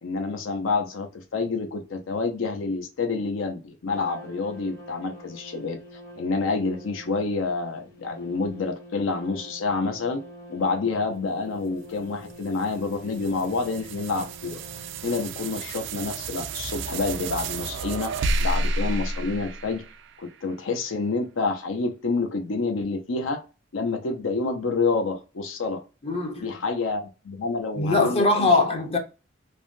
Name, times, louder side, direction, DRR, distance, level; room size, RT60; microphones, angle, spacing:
voice 1, 0.0-5.8 6.2-10.2 10.5-14.6 15.0-18.1 18.4-19.8 20.2-23.4 23.7-25.8 26.4-28.5, left 3 dB, 80° left, 0.5 m, -28 dB
Trumpet, 3.9-16.0, equal, 50° left, 1.1 m, -46 dB
sound 1, 11.8-20.4, right 2 dB, 65° right, 0.3 m, -31 dB
voice 2, 26.0-26.5 27.8-29.0, left 3 dB, 30° left, 0.5 m, -21 dB
3.3 x 2.1 x 2.4 m
head